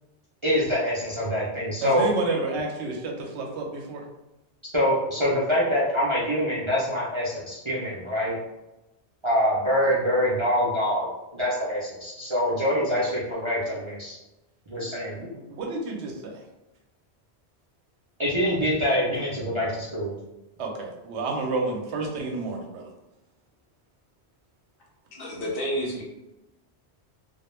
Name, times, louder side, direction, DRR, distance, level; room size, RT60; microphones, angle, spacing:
voice 1, 0.4-2.0 4.7-8.4 9.2-14.2 14.7-15.2 18.2-20.1, equal, 40° right, -8 dB, 0.4 m, -25 dB
voice 2, 1.8-4.0 15.1-16.4 20.6-22.9, right 3 dB, 75° right, 1 dB, 0.8 m, -30 dB
voice 3, 25.1-26.0, equal, 60° left, -2 dB, 0.8 m, -30 dB
2.1 x 2.1 x 3.0 m, 0.97 s
omnidirectional pair, 1.1 m